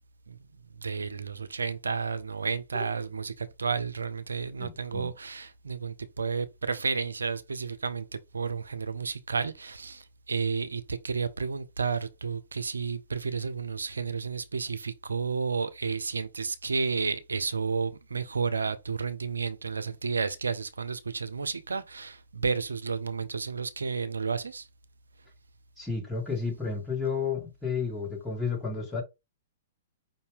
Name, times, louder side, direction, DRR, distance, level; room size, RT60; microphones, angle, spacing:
voice 1, 0.6-24.7, right 5 dB, 85° right, 0.5 m, -32 dB
voice 2, 4.6-5.1 25.8-29.0, left 5 dB, 5° left, 2.0 m, -32 dB
5.1 x 2.7 x 3.5 m
figure-of-eight pair, 115°, 0 cm